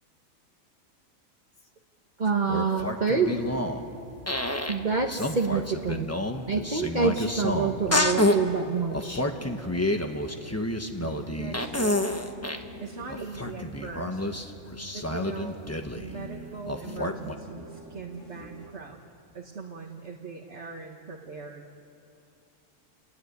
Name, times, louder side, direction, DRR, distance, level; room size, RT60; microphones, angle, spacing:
voice 1, 2.2-3.4 4.7-6.1 6.5-9.2, right 5 dB, 35° right, 2 dB, 1.3 m, -26 dB
sound 1, 2.3-3.9 4.3-4.8 5.1-8.4 8.9-12.7 13.1-16.1 16.7-17.3, left 1 dB, 10° left, 1.2 m, -29 dB
sound 2, 3.3-18.8, equal, 65° left, 2.9 m, -48 dB
voice 2, 11.0-12.2 12.5-14.2 14.9-15.6 15.9-19.0 19.3-21.7, right 4 dB, 55° right, -1 dB, 1.9 m, -41 dB
29.5 x 19.5 x 9.5 m, 2.7 s
omnidirectional pair, 1.4 m